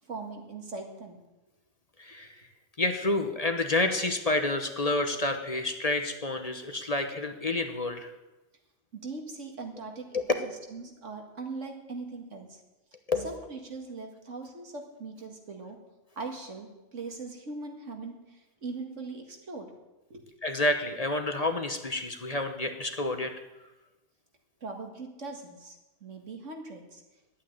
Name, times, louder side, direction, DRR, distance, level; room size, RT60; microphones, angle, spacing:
voice 1, 0.0-1.2 8.9-10.2 10.7-12.6 13.2-15.8 16.2-19.7 20.1-20.2 24.6-27.0, right 3 dB, 85° right, 3 dB, 2.3 m, -40 dB
voice 2, 2.8-8.1 10.1-10.2 13.1-13.3 20.4-23.3, left 2 dB, 35° left, 6 dB, 1.1 m, -29 dB
11.0 x 8.9 x 9.2 m, 1.0 s
omnidirectional pair, 1.2 m